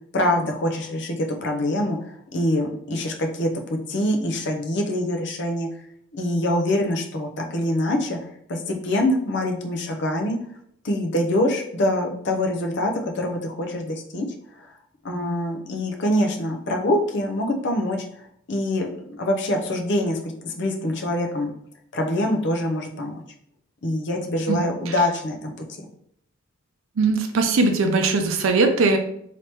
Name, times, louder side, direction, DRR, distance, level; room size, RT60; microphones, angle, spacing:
voice 1, 0.1-1.2 1.4-5.7 6.1-8.2 8.5-10.4 10.8-14.3 14.6-14.7 15.0-18.9 19.2-21.5 21.9-23.2 23.8-25.6, left 1 dB, 55° left, 2 dB, 0.6 m, -24 dB
voice 2, 27.0-29.0, right 3 dB, 75° right, 5 dB, 0.5 m, -20 dB
3.4 x 2.8 x 2.9 m, 0.69 s
head